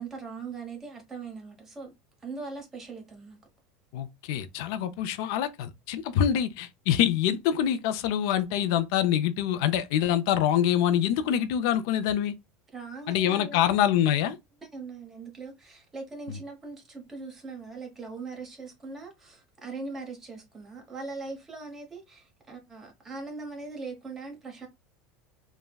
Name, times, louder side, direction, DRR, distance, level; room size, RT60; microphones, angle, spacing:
voice 1, 0.0-1.9 2.2-3.4 4.8-4.9 12.7-13.7 14.7-24.7, right 4 dB, 15° right, 0.9 m, -40 dB
voice 2, 3.9-12.3 13.1-14.4 16.3-16.4, left 10 dB, 65° left, 0.3 m, -25 dB
3.4 x 2.0 x 2.2 m
supercardioid pair, 150°, 2 cm